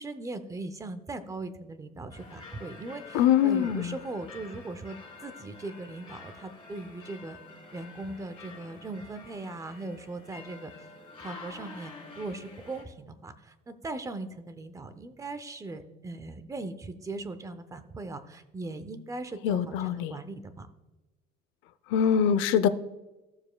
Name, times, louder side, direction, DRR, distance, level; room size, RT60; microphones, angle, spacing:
voice 1, 0.0-5.0 5.2-7.4 7.7-10.7 11.2-20.7, right 2 dB, 15° right, 11 dB, 0.6 m, -39 dB
sound 1, 2.1-12.8, left 4 dB, 25° left, 2.2 m, -48 dB
voice 2, 3.1-4.0 19.4-20.1 21.9-22.7, left 9 dB, 85° left, 13 dB, 0.6 m, -23 dB
15.5 x 6.9 x 2.2 m, 1.1 s
cardioid pair, 155°, 20 cm